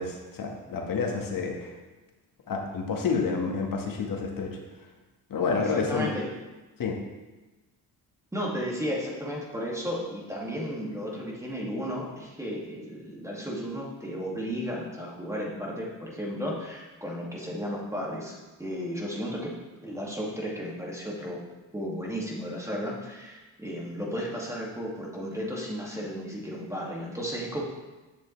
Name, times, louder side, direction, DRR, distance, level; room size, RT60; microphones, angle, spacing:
voice 1, 0.0-1.7 2.5-4.6 5.3-6.1 6.8-7.0, left 4 dB, 55° left, 2 dB, 1.6 m, -29 dB
voice 2, 5.7-6.3 8.3-19.6 19.8-21.4 21.7-27.6, equal, 5° right, -3 dB, 2.2 m, -34 dB
8.4 x 6.6 x 3.2 m, 1.2 s
supercardioid pair, 70°, 41 cm